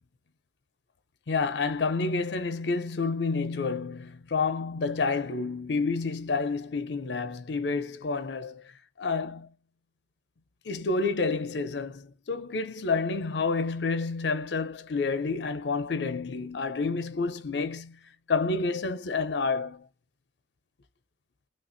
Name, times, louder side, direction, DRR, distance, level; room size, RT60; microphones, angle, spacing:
voice 1, 1.3-9.5 10.6-18.0 18.3-19.9, left 4 dB, 80° left, 0.6 m, -29 dB
3.3 x 2.5 x 2.6 m
head